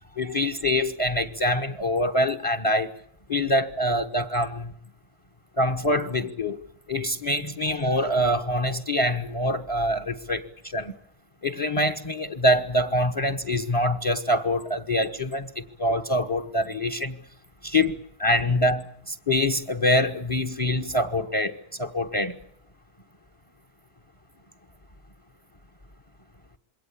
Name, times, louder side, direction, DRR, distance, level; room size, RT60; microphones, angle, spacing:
voice 1, 0.1-2.9 3.3-4.7 5.6-6.6 6.9-10.9 11.4-17.2 17.6-22.4, left 1 dB, 25° left, 10 dB, 1.1 m, -25 dB
27.0 x 22.0 x 8.6 m, 0.71 s
omnidirectional pair, 1.6 m